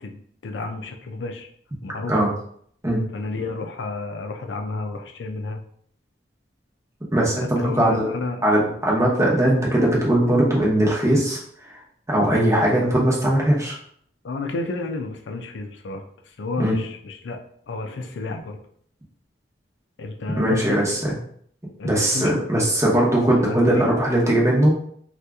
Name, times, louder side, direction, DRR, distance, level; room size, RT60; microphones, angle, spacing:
voice 1, 0.0-1.5 1.8-2.2 3.1-5.6 7.4-8.4 14.2-17.4 17.7-18.6 20.0-20.9 21.8-22.5 23.5-23.9, left 3 dB, 85° left, 4 dB, 0.5 m, -31 dB
voice 2, 7.1-8.1 8.4-11.4 12.1-13.8 16.6-16.8 20.4-21.2 21.8-24.8, right 1 dB, 15° right, -4 dB, 0.9 m, -19 dB
2.8 x 2.4 x 3.5 m, 0.63 s
head